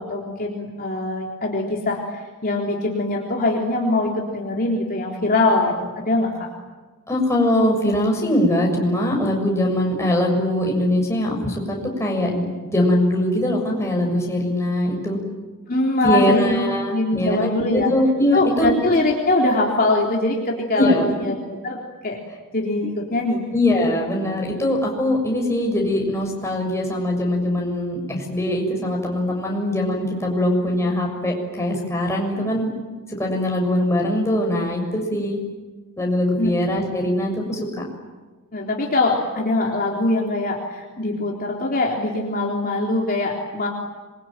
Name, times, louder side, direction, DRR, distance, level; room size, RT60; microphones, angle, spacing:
voice 1, 0.0-6.3 15.7-16.6 16.9-17.9 18.3-21.3 21.6-22.2 22.5-23.4 36.4-36.5 38.5-43.7, left 2 dB, 45° left, -2 dB, 3.8 m, -22 dB
voice 2, 7.1-15.2 16.0-18.7 20.7-21.0 23.5-32.7 33.1-35.4 36.0-37.8, left 1 dB, 15° left, 0 dB, 6.9 m, -22 dB
27.0 x 24.0 x 9.3 m, 1.3 s
head